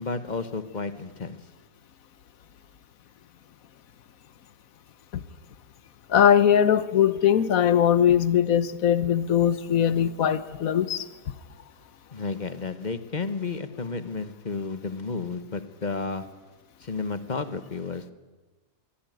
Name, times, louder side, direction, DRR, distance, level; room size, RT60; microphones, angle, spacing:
voice 1, 0.0-1.4 12.1-16.2 16.8-18.1, left 4 dB, 30° left, 1.1 m, -32 dB
voice 2, 6.1-11.1, left 9 dB, 65° left, 1.3 m, -21 dB
23.5 x 16.0 x 9.2 m
omnidirectional pair, 1.7 m